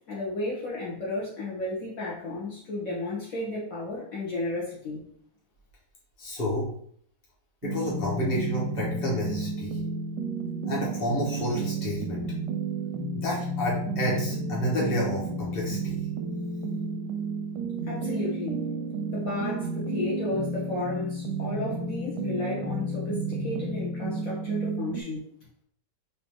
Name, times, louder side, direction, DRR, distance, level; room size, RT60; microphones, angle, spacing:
voice 1, 0.1-5.1 17.9-18.6 19.0-25.2, left 2 dB, 60° left, -6 dB, 1.4 m, -33 dB
voice 2, 6.2-6.7 7.6-9.8 10.7-12.2 13.1-16.0, equal, 25° left, -5 dB, 1.3 m, -30 dB
sound 1, 7.6-25.0, right 3 dB, 85° right, 1.2 m, -32 dB
4.1 x 2.8 x 3.5 m, 0.63 s
omnidirectional pair, 1.8 m